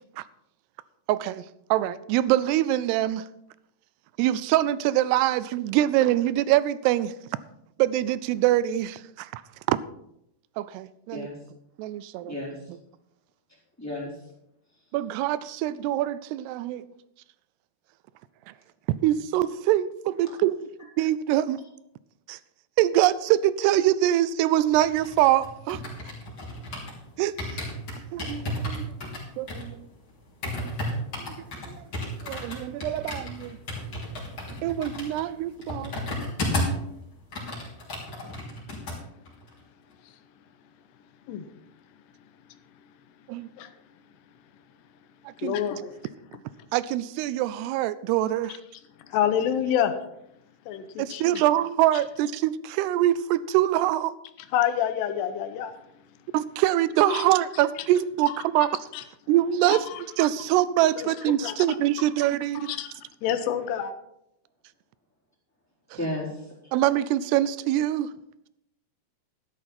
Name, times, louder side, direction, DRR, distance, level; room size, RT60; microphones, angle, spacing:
voice 1, 1.1-1.5 1.7-3.2 4.2-7.1 7.8-9.4 9.7-9.8 10.6-11.3 11.8-12.4 14.9-16.9 19.0-20.7 21.0-21.6 22.3-22.4 22.8-25.8 27.2-27.3 28.1-28.9 29.4-29.9 31.2-31.3 31.7-31.8 32.2-33.6 34.6-35.9 43.3-43.5 45.4-45.6 46.7-48.6 51.0-54.2 56.3-58.8 59.3-59.9 60.2-62.7 66.7-68.1, right 13 dB, 85° right, 2.6 m, -24 dB
voice 2, 12.2-12.6 13.8-14.1 65.9-66.5, left 1 dB, 5° left, 3.5 m, -33 dB
sound 1, 24.7-27.0 27.4-36.9 37.1-39.0 39.3-39.5, left 1 dB, 30° left, 3.7 m, -33 dB
voice 3, 45.4-45.9 49.1-49.9 50.7-51.4 54.5-55.7 57.1-57.3 58.3-58.7 58.9-59.0 59.7-60.0 61.0-61.6 62.6-62.9 63.2-63.9, left 9 dB, 90° left, 3.0 m, -27 dB
12.5 x 11.0 x 4.3 m
omnidirectional pair, 4.8 m